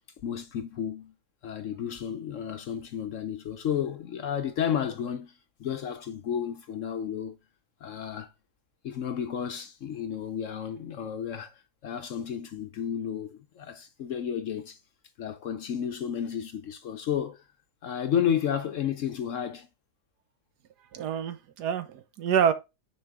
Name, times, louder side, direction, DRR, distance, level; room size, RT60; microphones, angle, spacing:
voice 1, 0.2-1.1 1.4-7.4 7.8-8.3 8.8-14.8 15.2-17.4 17.8-19.7, left 8 dB, 65° left, 0.8 m, -32 dB
voice 2, 20.9-22.5, right 8 dB, 80° right, 1.4 m, -27 dB
6.3 x 4.7 x 3.5 m
omnidirectional pair, 1.7 m